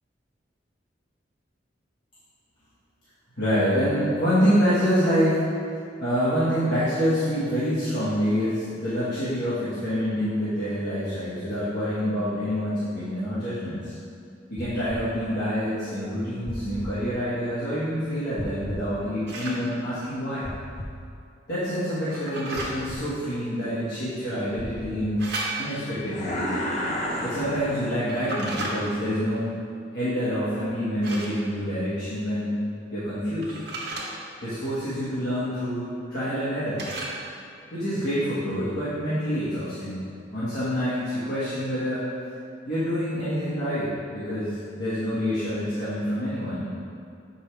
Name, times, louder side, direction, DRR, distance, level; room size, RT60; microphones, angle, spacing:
voice 1, 3.4-5.5 6.0-13.9 14.5-20.4 21.5-25.3 25.6-26.5 27.2-29.5 29.9-32.6 32.9-33.5 34.4-36.8 37.7-40.0 40.3-42.0 42.6-46.7, equal, 60° left, -13 dB, 1.6 m, -26 dB
sound 1, 14.6-15.0 16.5-16.9 18.4-18.9 20.4-21.0 22.5-23.0 24.6-25.1, left 1 dB, 15° left, 0.6 m, -36 dB
sound 2, 19.3-19.6 22.1-22.7 25.2-25.9 28.1-28.7 31.0-31.4 33.4-34.1 36.8-37.2, right 2 dB, 60° right, 1.2 m, -33 dB
sound 3, 26.1-28.4, equal, 35° left, 0.9 m, -31 dB
7.4 x 5.5 x 3.3 m, 2.4 s
head